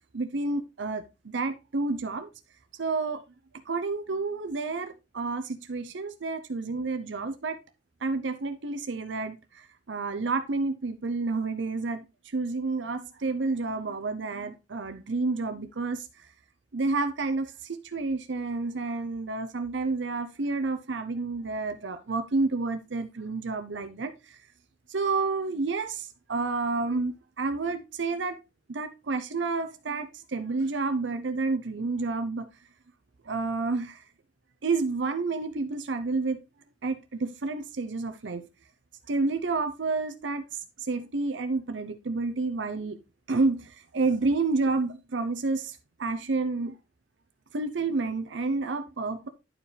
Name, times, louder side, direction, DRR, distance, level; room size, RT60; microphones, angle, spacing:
voice 1, 0.1-2.3 2.8-3.2 3.7-7.6 8.0-12.0 12.3-16.1 16.7-24.4 24.9-28.4 28.7-32.5 33.3-34.0 34.6-36.4 36.8-38.4 39.1-40.4 40.9-43.0 43.3-46.7 47.5-49.3, right 3 dB, 75° right, 0.7 m, -30 dB
11.0 x 4.8 x 3.3 m
head